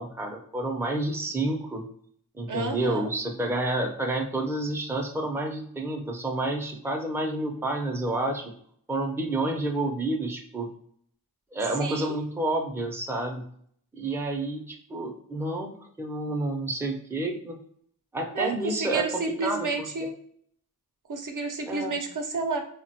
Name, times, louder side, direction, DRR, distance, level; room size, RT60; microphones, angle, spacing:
voice 1, 0.0-1.9 2.4-8.5 8.9-10.7 11.5-13.5 13.9-15.7 16.0-17.6 18.1-19.9 21.7-22.0, right 2 dB, 5° right, 2 dB, 0.5 m, -29 dB
voice 2, 2.5-3.1 11.8-12.2 18.3-20.1 21.1-22.6, right 3 dB, 60° right, 4 dB, 0.5 m, -30 dB
3.3 x 2.2 x 2.7 m, 0.62 s
wide cardioid pair, 80°, 36 cm